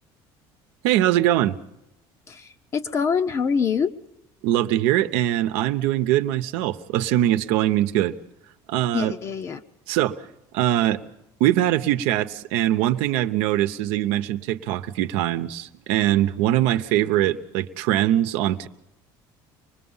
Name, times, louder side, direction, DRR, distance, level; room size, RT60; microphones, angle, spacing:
voice 1, 0.8-1.6 4.4-8.1 8.7-9.1 9.9-10.2 10.5-11.0 11.4-18.7, right 13 dB, 80° right, 9 dB, 0.9 m, -22 dB
voice 2, 2.3-3.9 8.9-9.6, left 6 dB, 30° left, 9 dB, 0.7 m, -25 dB
25.0 x 20.5 x 5.6 m, 0.88 s
cardioid pair, 160°, 10 cm